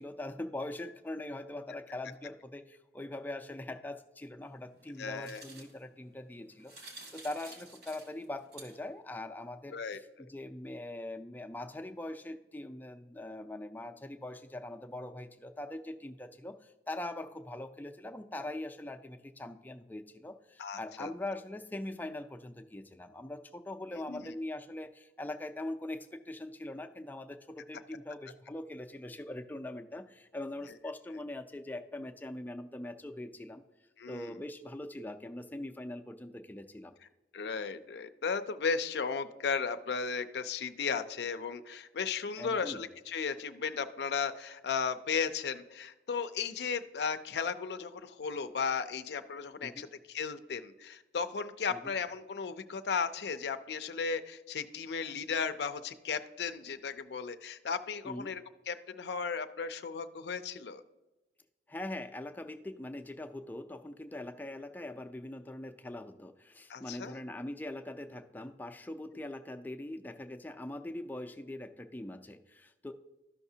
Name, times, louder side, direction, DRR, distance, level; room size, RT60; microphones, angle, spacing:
voice 1, 0.0-9.8 10.2-33.6 34.1-37.0 42.4-42.8 49.6-49.9 51.7-51.9 58.0-58.3 61.7-72.9, left 1 dB, 10° left, 6 dB, 0.4 m, -42 dB
sound 1, 4.4-9.1, right 2 dB, 60° right, 1.8 m, -53 dB
voice 2, 5.0-5.4 9.7-10.0 20.6-21.1 23.9-24.3 34.0-34.4 37.3-60.8 66.7-67.2, left 5 dB, 75° left, 10 dB, 0.4 m, -35 dB
13.0 x 5.8 x 2.7 m, 1.1 s
head